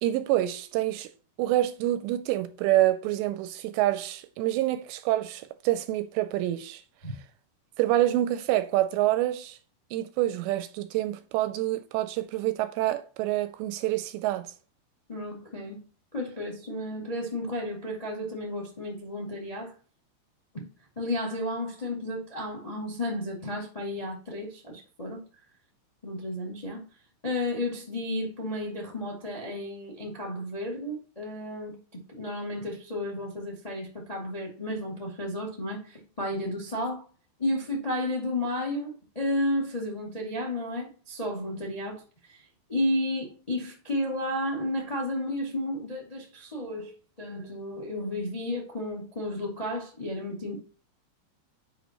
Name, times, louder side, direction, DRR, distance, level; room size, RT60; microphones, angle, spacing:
voice 1, 0.0-1.1 1.4-6.8 7.8-9.6 9.9-14.5, right 14 dB, 85° right, 2.6 m, -27 dB
voice 2, 15.1-15.8 16.1-19.7 20.5-20.6 20.9-25.2 26.0-26.8 27.2-37.0 37.4-42.0 42.7-46.9 47.2-50.6, left 1 dB, 55° left, 0.4 m, -32 dB
10.0 x 5.1 x 3.0 m
omnidirectional pair, 5.3 m